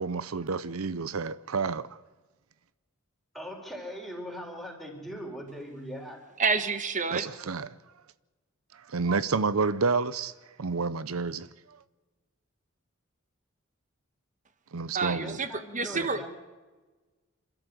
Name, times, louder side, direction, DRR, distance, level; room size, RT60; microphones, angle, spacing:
voice 1, 0.0-1.9 7.1-7.7 8.7-10.3 10.6-11.5 14.7-15.4 15.9-16.1, right 4 dB, 90° right, 0.7 m, -29 dB
voice 2, 3.3-6.2 15.0-16.3, equal, ahead, 4.4 m, -40 dB
voice 3, 6.4-7.3 14.9-16.3, right 4 dB, 35° right, 1.5 m, -28 dB
27.5 x 13.0 x 7.9 m
head